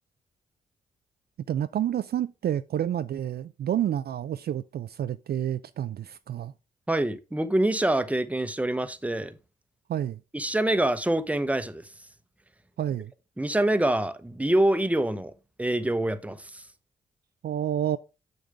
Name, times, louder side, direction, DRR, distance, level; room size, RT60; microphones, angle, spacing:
voice 1, 1.5-6.5 9.9-10.2 12.8-13.1 17.4-18.0, right 10 dB, 55° right, 0.4 m, -29 dB
voice 2, 6.9-9.3 10.3-11.8 13.4-15.3 15.6-16.6, right 1 dB, 5° right, 0.8 m, -25 dB
6.6 x 6.3 x 3.4 m
hypercardioid pair, 45°, 20 cm